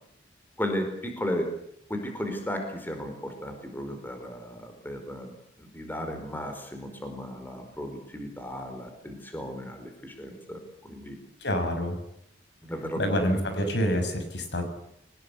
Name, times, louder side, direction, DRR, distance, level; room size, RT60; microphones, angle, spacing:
voice 1, 0.6-1.5 1.9-11.2 12.6-13.2, equal, 10° left, 5 dB, 4.7 m, -35 dB
voice 2, 11.4-12.0 13.0-14.7, equal, 65° left, 7 dB, 6.1 m, -27 dB
23.5 x 20.0 x 8.3 m, 0.72 s
head